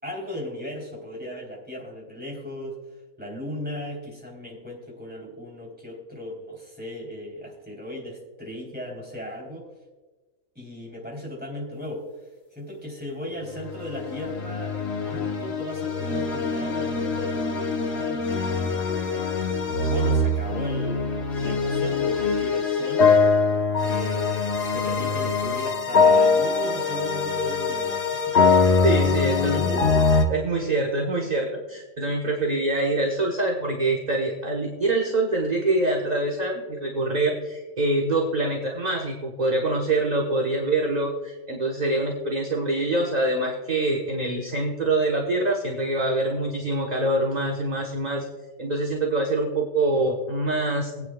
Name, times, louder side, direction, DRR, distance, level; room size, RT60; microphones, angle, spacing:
voice 1, 0.0-2.8 3.2-9.6 10.5-12.0 12.5-18.4 19.7-23.1 23.8-28.6 29.3-29.9, left 1 dB, 5° right, -3 dB, 3.5 m, -36 dB
sound 1, 13.5-30.3, left 4 dB, 50° left, 1.2 m, -23 dB
voice 2, 28.8-29.6 30.3-48.3 48.6-51.1, right 2 dB, 30° right, -1 dB, 1.2 m, -25 dB
22.0 x 9.2 x 2.3 m, 1.2 s
omnidirectional pair, 1.5 m